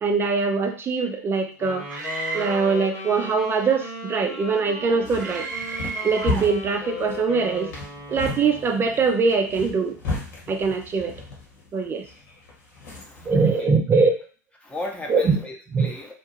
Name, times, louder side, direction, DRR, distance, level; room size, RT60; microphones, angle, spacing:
voice 1, 0.0-1.8 2.3-5.5 6.0-7.7 8.1-10.0 10.5-11.1 11.7-12.1 13.3-14.1 15.1-15.4 15.7-15.9, right 4 dB, 20° right, 5 dB, 0.4 m, -22 dB
Wind instrument woodwind instrument, 1.6-9.0, left 3 dB, 35° left, 1.1 m, -36 dB
Screaming, 1.9-2.8 5.2-6.5, right 4 dB, 80° right, 0.5 m, -32 dB
sound 1, 4.8-13.3, left 3 dB, 65° left, 1.4 m, -35 dB
voice 2, 13.0-13.7 14.6-16.1, left 2 dB, 10° left, 1 dB, 0.7 m, -36 dB
2.8 x 2.2 x 2.9 m, 0.38 s
figure-of-eight pair, 85°, 10 cm